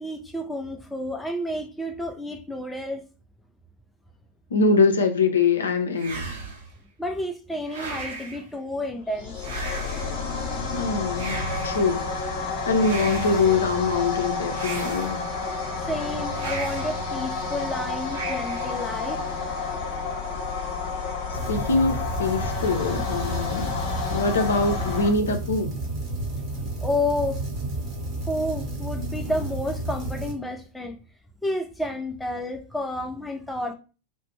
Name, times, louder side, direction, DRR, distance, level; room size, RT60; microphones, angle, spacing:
voice 1, 0.0-3.0 7.0-9.4 15.9-19.2 26.8-27.4 28.3-31.0 31.4-33.7, left 1 dB, 5° left, 0.3 m, -30 dB
voice 2, 4.5-6.2 10.7-15.2 21.3-23.7 24.1-25.7, left 4 dB, 70° left, 0.5 m, -24 dB
sound 1, 6.0-6.8 7.7-8.4 9.4-10.2 11.1-11.9 12.8-13.6 14.5-15.4 16.3-17.0 18.1-18.8, right 4 dB, 65° right, 0.6 m, -36 dB
sound 2, 9.1-25.1, left 4 dB, 50° left, 0.9 m, -30 dB
sound 3, 21.3-30.3, right 2 dB, 35° right, 1.0 m, -32 dB
2.4 x 2.1 x 3.1 m
figure-of-eight pair, 90°, 0 cm